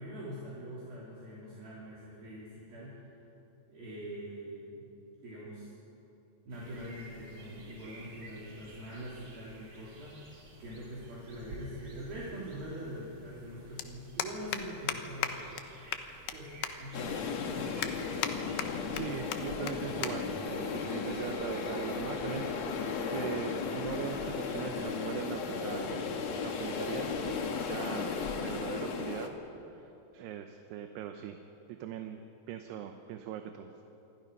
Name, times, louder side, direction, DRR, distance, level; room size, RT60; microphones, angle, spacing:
voice 1, 0.0-3.0 3.7-4.9 5.2-5.7 6.4-10.2 10.6-15.6 16.3-17.4, equal, 60° right, -7 dB, 5.1 m, -43 dB
sound 1, 6.5-23.1, right 2 dB, 35° right, 3.6 m, -53 dB
sound 2, 13.8-13.9 14.2-14.6 14.9-15.0 15.2-15.3 15.6-15.7 15.9-16.4 16.6-16.7 17.2-17.3 17.8-18.3 18.6-19.0 19.3-19.4 19.7-19.8 20.0-20.1 20.4-20.7 21.5-21.7, left 11 dB, 75° left, 2.9 m, -34 dB
sound 3, 16.9-29.3, left 5 dB, 55° left, 1.9 m, -35 dB
voice 2, 18.9-22.8 23.1-26.1 26.4-29.4 29.7-31.4 31.7-33.7, right 9 dB, 75° right, 6 dB, 2.9 m, -40 dB
27.0 x 23.5 x 5.4 m, 3.0 s
omnidirectional pair, 5.0 m